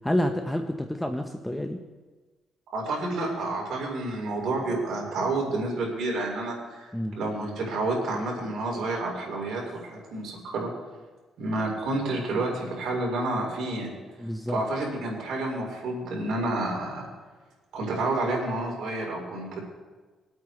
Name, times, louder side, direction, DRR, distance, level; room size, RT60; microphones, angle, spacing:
voice 1, 0.0-1.8 6.9-7.2 14.2-14.6, left 1 dB, 5° left, 5 dB, 0.8 m, -28 dB
voice 2, 2.7-10.7 11.4-13.9 14.5-17.0 17.7-19.6, right 2 dB, 70° right, -1 dB, 4.1 m, -29 dB
22.5 x 8.6 x 3.2 m, 1.3 s
cardioid pair, 90°, 0 cm